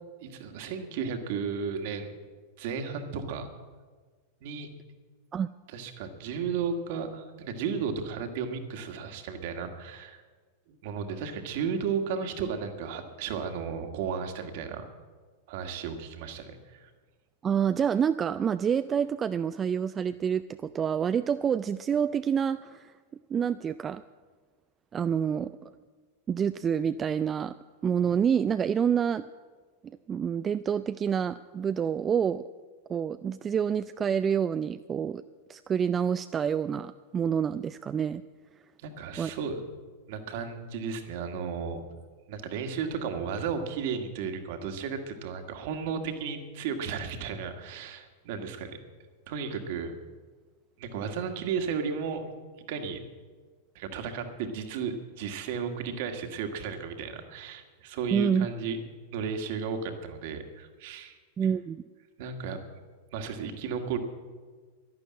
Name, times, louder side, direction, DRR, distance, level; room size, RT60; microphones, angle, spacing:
voice 1, 0.2-2.1 2.6-3.5 4.4-4.7 5.7-10.2 10.7-14.8 15.5-16.9 38.8-39.6 40.1-41.8 42.3-48.8 49.3-50.0 50.8-52.3 52.7-53.0 53.8-58.8 59.1-61.2 62.2-62.6 63.1-64.0, right 6 dB, 55° right, 6 dB, 1.9 m, -34 dB
voice 2, 17.4-22.9 23.3-24.0 24.9-25.7 26.3-27.5 27.8-29.2 30.1-32.4 32.9-35.2 35.5-38.2 39.2-39.3 58.1-58.5 61.4-61.8, right 7 dB, 25° right, 12 dB, 0.4 m, -27 dB
11.5 x 11.5 x 8.8 m, 1.5 s
figure-of-eight pair, 90°, 0 cm